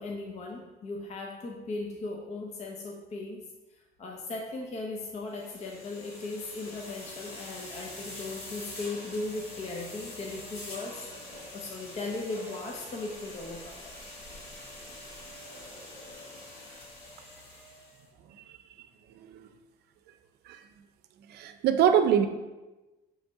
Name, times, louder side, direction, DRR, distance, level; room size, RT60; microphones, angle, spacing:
voice 1, 0.0-3.4 3.7-11.1 11.5-14.1, left 2 dB, 40° left, 0 dB, 0.8 m, -38 dB
sound 1, 5.3-18.0, left 1 dB, 85° left, 1.8 m, -45 dB
voice 2, 21.3-22.3, right 9 dB, 75° right, 9 dB, 0.5 m, -24 dB
6.4 x 3.2 x 4.6 m, 1.1 s
cardioid pair, 110°, 17 cm